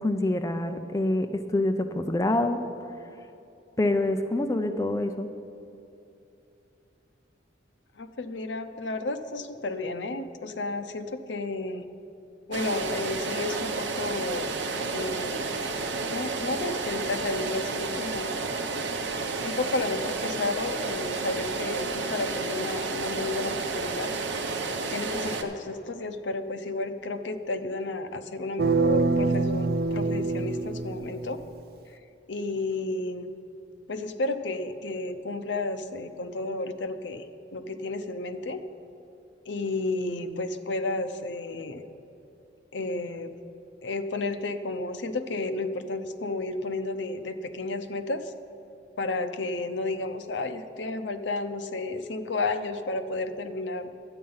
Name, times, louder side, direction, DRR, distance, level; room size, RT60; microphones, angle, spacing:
voice 1, 0.0-2.6 3.8-5.3, left 1 dB, 15° left, 6 dB, 0.4 m, -26 dB
voice 2, 8.0-11.9 12.5-14.5 14.9-15.5 16.1-18.4 19.4-24.1 24.9-31.4 32.3-33.3 33.9-37.3 37.5-38.6 39.5-41.8 42.7-43.3 43.8-48.3 49.0-53.9, left 2 dB, 75° left, 9 dB, 0.6 m, -32 dB
sound 1, 12.5-25.4, right 3 dB, 70° right, 0.9 m, -31 dB
sound 2, 28.6-31.6, right 3 dB, 55° right, 0.4 m, -25 dB
12.0 x 8.6 x 5.5 m, 2.8 s
head